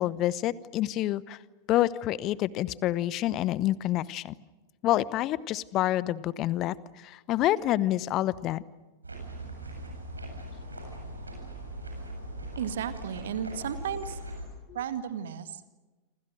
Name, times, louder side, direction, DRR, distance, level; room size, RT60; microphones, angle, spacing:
voice 1, 0.0-1.4 1.7-4.3 4.8-6.7 7.0-8.6 14.7-14.8, left 14 dB, 35° left, 20 dB, 0.9 m, -27 dB
sound 1, 9.0-14.4, right 1 dB, 80° right, 7.5 m, -40 dB
voice 2, 12.6-14.2 14.7-15.6, right 8 dB, 60° right, 10 dB, 2.0 m, -34 dB
28.5 x 26.0 x 6.5 m, 1.2 s
figure-of-eight pair, 90°, 0 cm